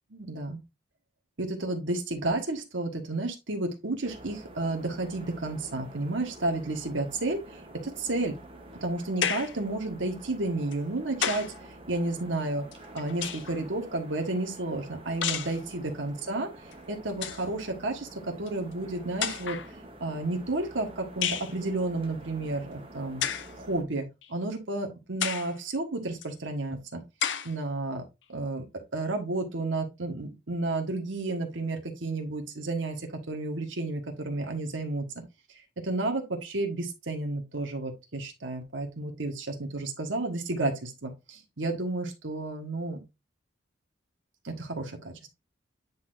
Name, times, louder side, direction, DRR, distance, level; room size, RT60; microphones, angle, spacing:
voice 1, 0.1-0.6 1.4-8.4 8.8-11.5 11.9-12.7 12.9-16.5 16.9-19.6 20.0-23.2 23.6-27.0 27.4-28.0 28.3-28.6 28.9-35.0 35.8-43.0 44.4-45.3, right 2 dB, 85° right, 3 dB, 1.4 m, -31 dB
sound 1, 4.0-23.8, right 1 dB, 30° right, 1.0 m, -48 dB
sound 2, 9.2-9.6 10.7-11.6 12.7-13.6 15.2-15.6 16.7-16.8 17.1-17.5 18.5-18.6 19.2-19.7 21.2-21.5 23.2-23.5 24.2-24.3 25.2-25.6 26.2-26.3 27.2-27.5, left 9 dB, 80° left, 0.6 m, -31 dB
9.5 x 4.2 x 2.6 m, 0.24 s
head